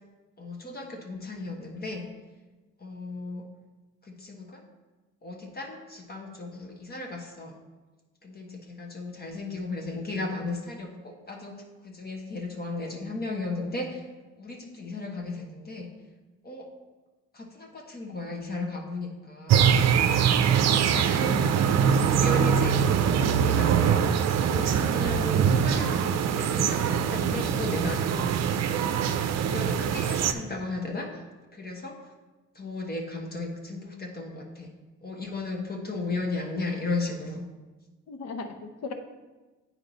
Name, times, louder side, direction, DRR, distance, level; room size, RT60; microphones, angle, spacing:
voice 1, 0.4-2.1 2.8-3.4 4.0-4.6 5.2-7.6 8.2-14.0 14.4-15.9 16.4-16.7 17.3-19.7 20.3-20.6 20.9-22.8 23.2-28.5 29.4-31.2 31.5-31.9 32.5-34.7 35.0-37.5, left 2 dB, 30° left, 1 dB, 1.1 m, -35 dB
sound 1, 19.5-30.3, right 7 dB, 60° right, 0.6 m, -23 dB
voice 2, 20.5-21.1 38.1-38.9, left 4 dB, 60° left, 7 dB, 0.9 m, -38 dB
8.6 x 4.5 x 4.0 m, 1.2 s
cardioid pair, 90°, 30 cm